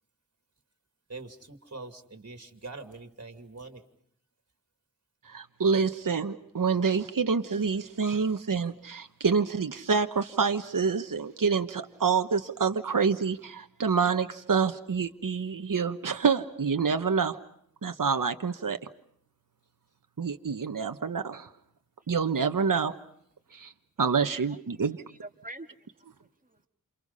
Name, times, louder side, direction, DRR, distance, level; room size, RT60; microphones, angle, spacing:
voice 1, 1.1-3.9, right 3 dB, 45° right, 7 dB, 2.7 m, -43 dB
voice 2, 5.2-17.4 17.8-18.8 20.2-21.5 22.1-22.9 23.5-23.7 24.0-25.0, right 5 dB, 70° right, 7 dB, 1.2 m, -27 dB
voice 3, 24.0-24.6 25.1-25.9 26.2-26.7, right 1 dB, 25° right, 6 dB, 2.0 m, -47 dB
29.0 x 28.5 x 5.5 m, 0.67 s
wide cardioid pair, 70°, 34 cm